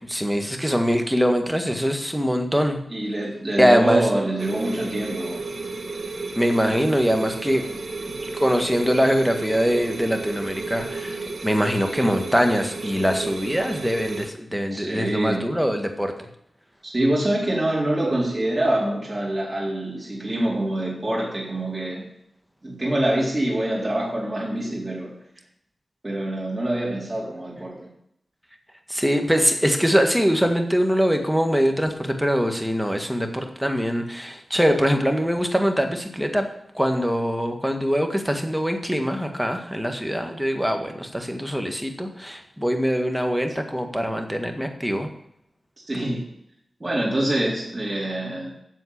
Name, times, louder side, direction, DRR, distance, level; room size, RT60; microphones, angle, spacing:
voice 1, 0.1-2.8 3.6-4.1 6.4-7.8 8.4-16.3 28.9-36.5 36.8-45.1, equal, 5° right, 5 dB, 1.8 m, -23 dB
voice 2, 2.9-5.4 11.9-12.1 14.7-15.4 16.8-22.1 22.6-25.1 26.0-27.9 45.9-46.2 46.8-48.5, right 1 dB, 30° right, -4 dB, 3.9 m, -25 dB
sound 1, 4.4-14.3, right 3 dB, 70° right, 1.7 m, -32 dB
7.7 x 7.6 x 8.4 m, 0.75 s
cardioid pair, 45°, 0 cm